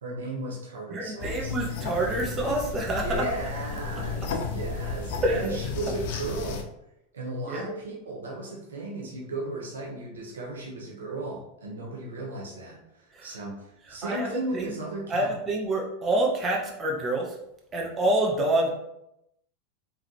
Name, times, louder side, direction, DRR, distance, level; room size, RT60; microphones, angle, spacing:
voice 1, 0.0-1.5 3.0-6.7 7.1-15.3, right 2 dB, 80° right, -2 dB, 1.1 m, -35 dB
voice 2, 0.9-3.3 5.2-5.5 7.5-7.7 13.1-13.3 14.0-14.7 15.1-17.4 17.7-18.7, right 1 dB, 30° right, 0 dB, 0.9 m, -27 dB
sound 1, 1.2-6.6, left 4 dB, 60° left, 0.6 m, -33 dB
3.7 x 3.5 x 3.0 m, 0.81 s
hypercardioid pair, 90°, 0 cm